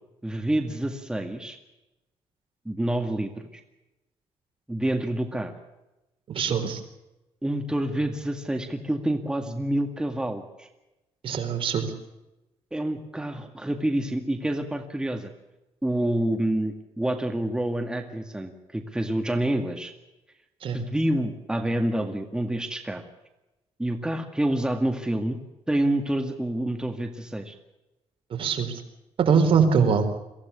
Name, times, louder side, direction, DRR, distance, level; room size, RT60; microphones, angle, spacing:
voice 1, 0.2-1.6 2.7-3.6 4.7-5.5 7.4-10.7 12.7-15.3 15.8-19.9 20.7-23.0 23.8-25.4 25.7-27.5, right 1 dB, 10° right, 5 dB, 2.0 m, -27 dB
voice 2, 6.3-6.8 11.2-11.9 20.6-20.8 28.4-28.8 29.2-30.1, right 6 dB, 60° right, 6 dB, 4.0 m, -22 dB
23.5 x 16.0 x 8.3 m, 0.97 s
cardioid pair, 120°, 10 cm